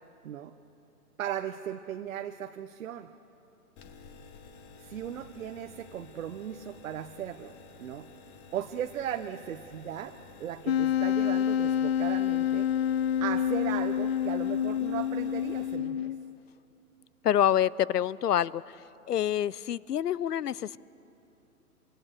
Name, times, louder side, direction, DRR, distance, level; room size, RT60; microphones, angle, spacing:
voice 1, 0.2-0.5 1.2-3.1 4.8-8.1 8.5-12.7 13.2-16.1, right 10 dB, 55° right, 6 dB, 1.1 m, -37 dB
sound 1, 3.8-15.8, left 4 dB, 20° left, 1.4 m, -52 dB
Wind instrument woodwind instrument, 10.7-16.3, left 9 dB, 45° left, 0.5 m, -28 dB
voice 2, 17.2-18.8 19.1-20.8, left 10 dB, 80° left, 22 dB, 0.7 m, -27 dB
27.5 x 26.0 x 6.6 m, 2.9 s
hypercardioid pair, 145°, 46 cm